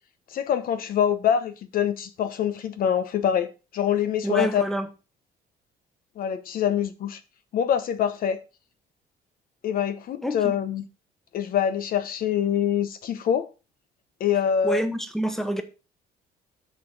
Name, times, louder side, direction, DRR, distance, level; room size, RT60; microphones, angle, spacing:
voice 1, 0.3-4.6 6.2-7.2 7.5-8.4 9.6-10.8 11.3-13.5 14.2-14.8, left 9 dB, 60° left, 0.9 m, -25 dB
voice 2, 4.2-4.9 10.2-10.6 14.6-15.6, right 1 dB, ahead, 1.2 m, -27 dB
6.8 x 6.4 x 4.6 m
cardioid pair, 110°, 17 cm